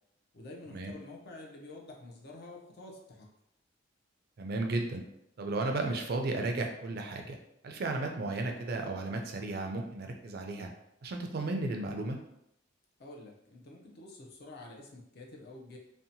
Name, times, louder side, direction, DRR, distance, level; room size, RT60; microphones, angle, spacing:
voice 1, 0.3-3.3 13.0-15.8, left 2 dB, 55° left, -1 dB, 0.5 m, -48 dB
voice 2, 4.4-5.0 5.4-7.4 7.6-10.7 11.0-12.2, right 2 dB, 50° right, 3 dB, 0.4 m, -34 dB
2.7 x 2.1 x 2.7 m, 0.78 s
head